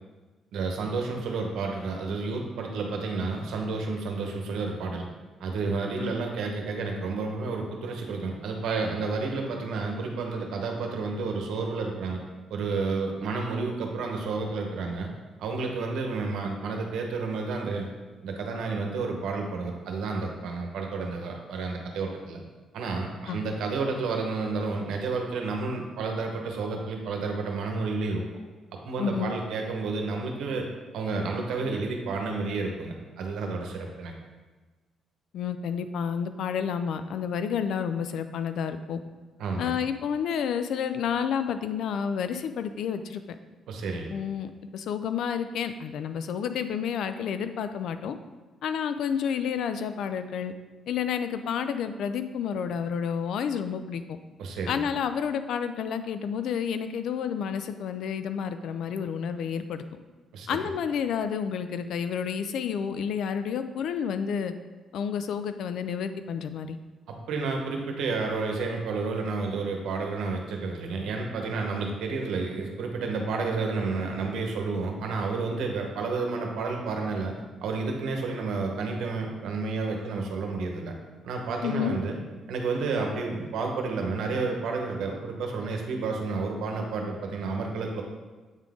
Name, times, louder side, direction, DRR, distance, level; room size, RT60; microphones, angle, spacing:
voice 1, 0.5-5.0 5.4-12.2 12.5-15.1 15.4-17.9 18.2-22.4 22.7-28.2 28.8-30.7 30.9-34.1 39.4-39.8 43.7-44.1 54.4-54.8 60.3-60.6 67.1-77.4 77.6-80.9 81.2-82.2 82.5-88.0, right 4 dB, 80° right, 2 dB, 1.0 m, -30 dB
voice 2, 29.0-29.3 35.3-39.0 39.6-43.2 44.1-48.2 48.6-50.5 50.9-54.0 54.7-59.8 60.5-64.5 64.9-66.8 81.6-81.9, left 7 dB, 75° left, 10 dB, 0.4 m, -30 dB
8.1 x 3.8 x 3.6 m, 1.3 s
cardioid pair, 90°, 0 cm